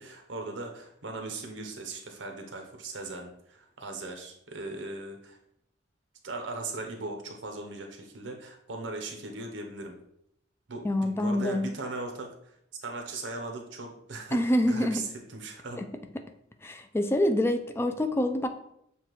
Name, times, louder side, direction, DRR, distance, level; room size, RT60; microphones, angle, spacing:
voice 1, 0.0-5.4 6.2-10.0 10.7-12.5 12.8-15.8, right 2 dB, 90° right, 3 dB, 0.8 m, -39 dB
voice 2, 10.8-11.7 14.3-15.0 15.8-15.9 16.6-18.5, left 1 dB, 15° left, 7 dB, 0.3 m, -26 dB
7.0 x 2.4 x 3.0 m, 0.75 s
head